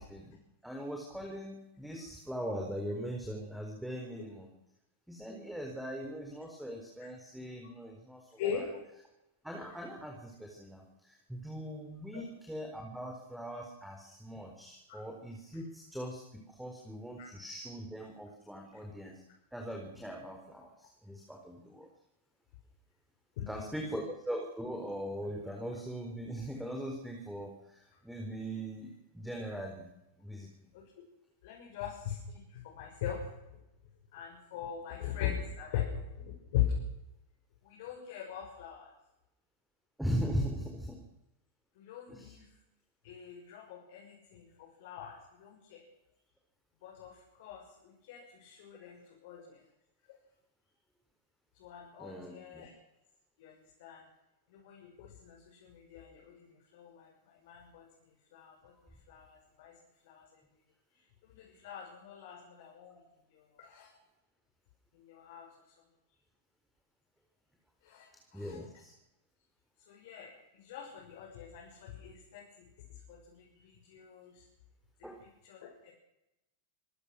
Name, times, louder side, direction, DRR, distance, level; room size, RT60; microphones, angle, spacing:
voice 1, 0.6-4.5 5.1-8.7 9.4-19.2 19.5-21.9 23.5-29.9 30.2-30.5 40.0-41.0 42.1-42.4 49.3-49.4 52.0-52.7 68.3-68.9 75.0-75.2, equal, ahead, 2 dB, 4.2 m, -40 dB
voice 2, 23.4-23.9 30.7-30.8 31.4-33.3 34.1-36.7 37.6-38.9 41.8-42.4 43.0-45.8 46.8-49.6 51.6-52.7 53.4-54.0 54.5-56.5 56.7-57.9 58.3-58.7 59.1-59.8 60.1-60.4 61.2-63.0 63.3-63.9 64.9-65.5 67.8-68.1 68.3-68.6 69.9-72.6 73.1-74.4 75.4-75.9, left 9 dB, 55° left, -2 dB, 6.7 m, -41 dB
26.5 x 16.5 x 6.3 m, 0.87 s
figure-of-eight pair, 90°, 0 cm